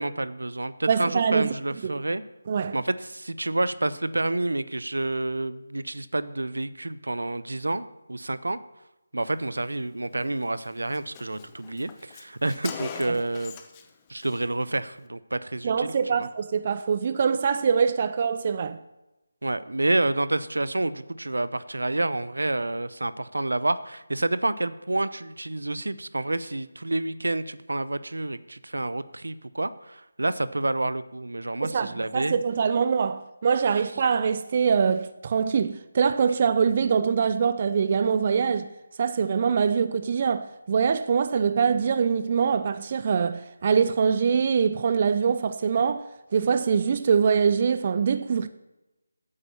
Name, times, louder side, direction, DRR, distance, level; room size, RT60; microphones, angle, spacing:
voice 1, 0.0-2.2 2.7-8.6 9.1-13.6 14.1-16.3 19.4-32.4, right 2 dB, 75° right, 0.6 m, -29 dB
voice 2, 0.9-1.5 1.8-1.9 2.5-2.8 13.1-13.2 15.6-18.8 31.6-38.7 39.0-48.5, right 6 dB, 35° right, 0.5 m, -24 dB
Car, 10.2-10.4 10.6-10.7 10.9-13.9 14.1-14.4, left 8 dB, 20° left, 0.8 m, -41 dB
8.7 x 8.4 x 7.0 m
figure-of-eight pair, 160°, 0 cm